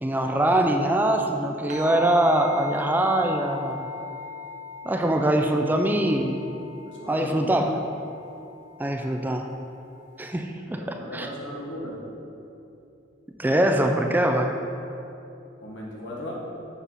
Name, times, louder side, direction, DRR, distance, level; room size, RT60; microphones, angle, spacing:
voice 1, 0.0-3.9 4.8-6.5 7.1-7.8 8.8-9.4 10.2-11.3 13.4-14.6, right 1 dB, 10° right, 4 dB, 0.3 m, -23 dB
sound 1, 1.7-10.4, left 4 dB, 40° right, 0.7 m, -39 dB
voice 2, 6.9-7.6 10.6-12.0 15.6-16.3, equal, 80° left, -4 dB, 1.6 m, -37 dB
8.0 x 6.0 x 4.1 m, 2.7 s
head